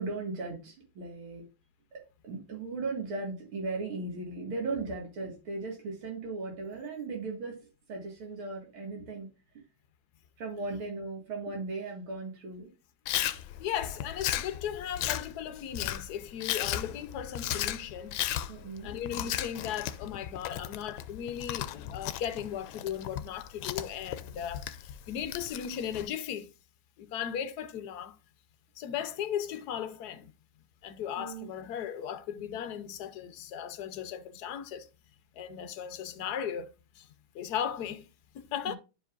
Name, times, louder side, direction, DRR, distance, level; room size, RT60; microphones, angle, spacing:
voice 1, 0.0-1.5 1.9-9.3 10.4-12.7 18.5-18.9 31.2-31.5 38.7-38.8, right 3 dB, 85° right, 2.8 m, -37 dB
Chewing mastication, 13.1-26.1, left 12 dB, 80° left, 1.3 m, -36 dB
voice 2, 13.3-18.2 18.8-26.5 27.0-28.2 28.8-30.3 30.8-34.9 35.3-37.1 37.3-38.1 38.3-38.7, left 9 dB, 65° left, 1.1 m, -37 dB
11.5 x 4.8 x 2.5 m
omnidirectional pair, 2.3 m